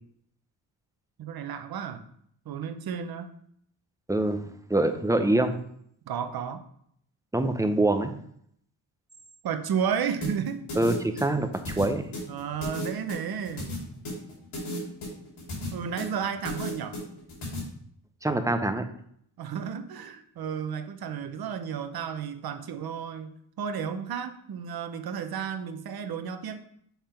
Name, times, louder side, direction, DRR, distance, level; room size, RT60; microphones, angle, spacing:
voice 1, 1.2-2.1 2.5-3.4 6.1-6.6 9.4-10.6 12.3-14.0 15.7-17.0 19.4-23.3 23.6-26.6, right 7 dB, 50° right, 8 dB, 0.8 m, -32 dB
voice 2, 4.1-5.6 7.3-8.1 10.8-11.5 11.8-12.1 18.2-18.9, right 2 dB, 5° right, 7 dB, 0.6 m, -25 dB
sound 1, 10.2-17.6, left 1 dB, 85° left, 2.7 m, -35 dB
7.2 x 3.6 x 4.3 m, 0.67 s
cardioid pair, 80°, 47 cm